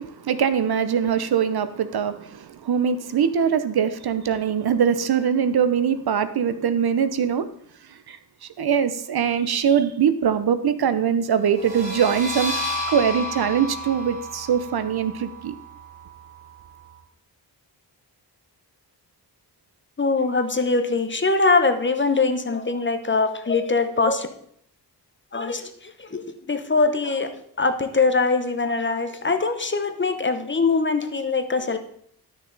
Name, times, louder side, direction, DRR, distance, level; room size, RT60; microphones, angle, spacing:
voice 1, 0.0-7.5 8.1-12.5 12.9-15.5, right 7 dB, 65° right, 12 dB, 0.8 m, -22 dB
sound 1, 11.5-16.9, left 1 dB, 20° right, 4.6 m, -32 dB
voice 2, 20.0-24.3 25.3-27.3 27.6-31.8, left 3 dB, 30° left, 8 dB, 0.9 m, -22 dB
12.0 x 6.2 x 4.0 m, 0.67 s
wide cardioid pair, 95°, 41 cm